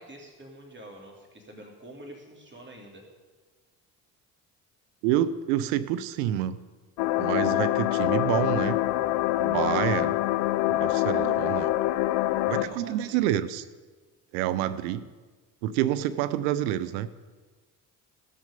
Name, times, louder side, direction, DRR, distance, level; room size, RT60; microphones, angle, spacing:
voice 1, 0.0-3.1 12.5-13.2, right 1 dB, 25° right, 1 dB, 2.9 m, -46 dB
voice 2, 5.0-6.6 7.2-8.8 9.4-10.2 10.7-11.7 12.5-13.6 14.3-15.1 15.6-17.1, right 12 dB, 80° right, 14 dB, 0.6 m, -28 dB
sound 1, 7.0-12.6, left 16 dB, 70° left, 0.6 m, -25 dB
16.5 x 6.6 x 5.1 m, 1.3 s
hypercardioid pair, 50°, 46 cm